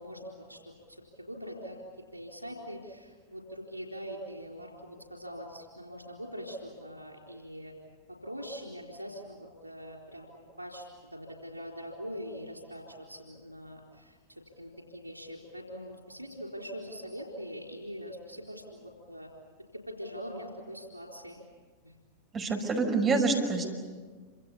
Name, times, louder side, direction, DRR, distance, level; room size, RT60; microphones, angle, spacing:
voice 1, 0.0-1.8 2.1-7.7 8.1-10.3 10.6-10.9 11.1-19.3 19.7-21.4 21.8-22.0, equal, 90° left, 1 dB, 3.9 m, -43 dB
voice 2, 22.3-23.6, right 3 dB, 25° right, 2 dB, 5.8 m, -26 dB
28.0 x 26.5 x 7.1 m, 1.5 s
figure-of-eight pair, 90°, 0 cm